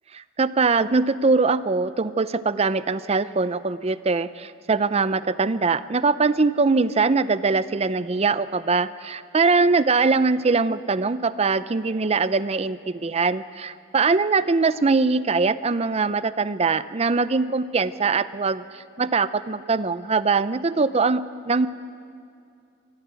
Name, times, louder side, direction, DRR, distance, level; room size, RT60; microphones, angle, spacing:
voice 1, 0.2-21.7, right 4 dB, 35° right, 15 dB, 0.5 m, -22 dB
23.0 x 15.0 x 8.2 m, 2.5 s
head